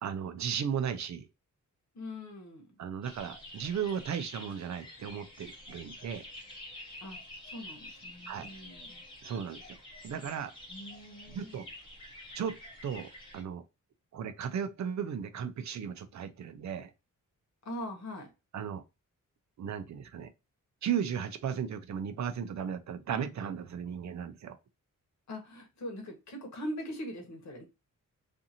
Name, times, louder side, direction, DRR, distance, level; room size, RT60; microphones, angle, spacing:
voice 1, 0.0-1.3 2.8-6.2 8.3-8.5 9.2-9.8 10.0-10.5 11.3-11.7 12.3-12.5 12.8-13.6 14.1-16.9 18.5-18.8 19.6-20.3 20.8-24.6, right 8 dB, 60° right, 0.5 m, -35 dB
voice 2, 1.9-2.8 7.0-7.2 7.5-9.0 10.7-11.6 17.6-18.3 25.3-27.6, left 1 dB, 55° left, 1.0 m, -42 dB
sound 1, 3.0-13.4, left 1 dB, 15° left, 1.2 m, -48 dB
2.5 x 2.5 x 2.7 m
wide cardioid pair, 180°, 32 cm